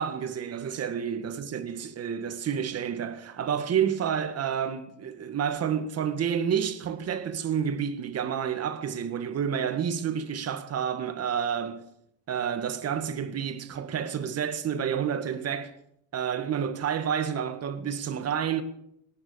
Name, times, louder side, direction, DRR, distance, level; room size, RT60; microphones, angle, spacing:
voice 1, 0.0-11.9 12.3-15.7 16.1-18.6, right 8 dB, 50° right, 1.9 m, -29 dB
19.0 x 10.5 x 7.0 m
supercardioid pair, 90°, 32 cm